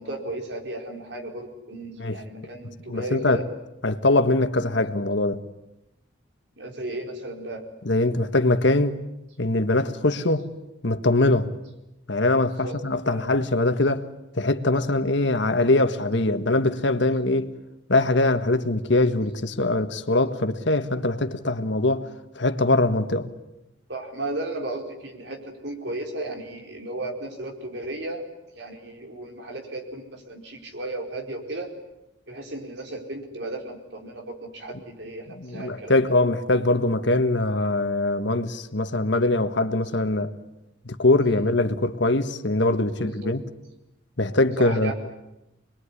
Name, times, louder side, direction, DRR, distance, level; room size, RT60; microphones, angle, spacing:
voice 1, 0.0-3.5 6.6-7.6 12.6-12.8 13.1-13.3 23.9-28.2 28.5-31.7 32.3-35.9 41.3-41.5 42.9-43.4 44.6-44.9, right 2 dB, 65° right, 4.8 m, -35 dB
voice 2, 2.9-3.4 3.8-5.4 7.8-9.0 9.4-10.5 10.8-11.5 12.1-14.0 14.3-17.5 17.9-22.1 22.3-23.3 35.4-40.3 40.8-43.4 44.2-44.9, left 2 dB, 65° left, 1.6 m, -22 dB
26.5 x 22.0 x 9.9 m
head